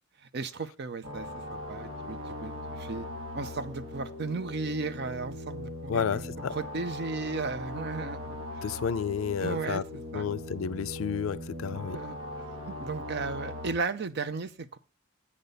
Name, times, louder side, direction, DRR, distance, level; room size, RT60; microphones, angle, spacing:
voice 1, 0.2-3.1 3.3-8.6 9.4-9.8 10.1-10.3 11.7-12.1 12.6-14.8, right 4 dB, 55° right, 0.6 m, -35 dB
sound 1, 1.0-13.7, left 1 dB, 80° right, 1.5 m, -40 dB
voice 2, 5.9-6.5 8.6-9.8 10.1-12.0, left 7 dB, 80° left, 0.4 m, -31 dB
8.5 x 6.7 x 3.9 m
head